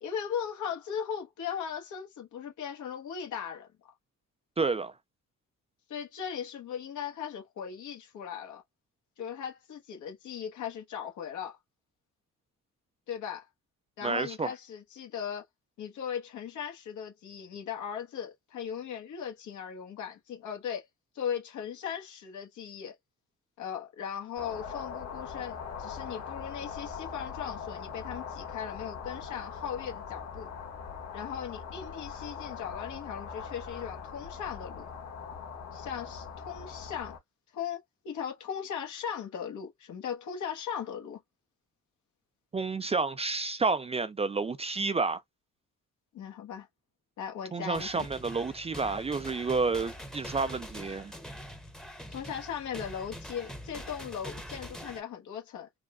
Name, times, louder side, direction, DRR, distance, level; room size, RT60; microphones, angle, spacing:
voice 1, 0.0-3.7 5.9-8.6 9.2-11.6 13.1-13.5 14.0-15.4 15.8-20.9 21.1-22.9 23.6-30.5 31.1-34.9 35.7-37.2 37.5-37.8 38.0-41.2 46.1-46.7 47.2-48.1 52.1-55.7, left 8 dB, 75° left, 1.2 m, -38 dB
voice 2, 4.6-4.9 14.0-14.5 42.5-45.2 47.5-51.1, right 4 dB, 20° right, 0.3 m, -30 dB
sound 1, 24.4-37.2, left 6 dB, 60° left, 1.6 m, -41 dB
sound 2, 47.7-55.0, equal, ahead, 0.8 m, -44 dB
3.7 x 2.2 x 2.4 m
cardioid pair, 90°, 30 cm